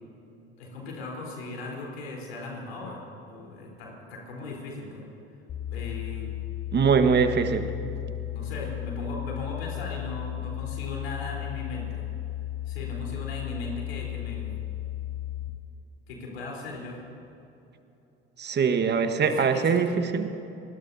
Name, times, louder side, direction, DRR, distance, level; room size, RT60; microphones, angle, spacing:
voice 1, 0.6-3.0 3.3-5.0 5.7-6.3 7.0-7.1 8.3-12.0 12.7-14.6 16.1-17.0 19.2-20.0, left 2 dB, 80° left, -2 dB, 3.9 m, -38 dB
sound 1, 5.5-15.5, left 13 dB, 40° left, 1.4 m, -34 dB
voice 2, 6.7-7.7 18.4-20.3, right 6 dB, 35° right, 8 dB, 1.4 m, -22 dB
25.5 x 20.0 x 2.7 m, 2.9 s
hypercardioid pair, 65°, 30 cm